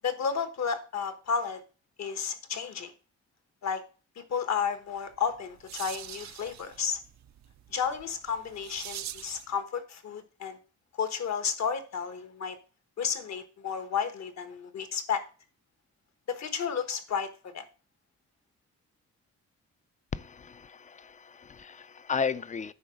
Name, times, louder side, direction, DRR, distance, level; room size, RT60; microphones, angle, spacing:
voice 1, 0.0-1.6 2.0-2.9 3.6-3.8 4.2-7.0 7.7-10.6 11.0-12.6 13.0-15.2 16.3-17.6, left 6 dB, 65° left, 1.3 m, -32 dB
sound 1, 5.1-9.5, right 11 dB, 70° right, 0.5 m, -44 dB
voice 2, 20.1-22.7, left 6 dB, 25° left, 0.4 m, -34 dB
9.4 x 3.8 x 6.3 m
wide cardioid pair, 145°, 29 cm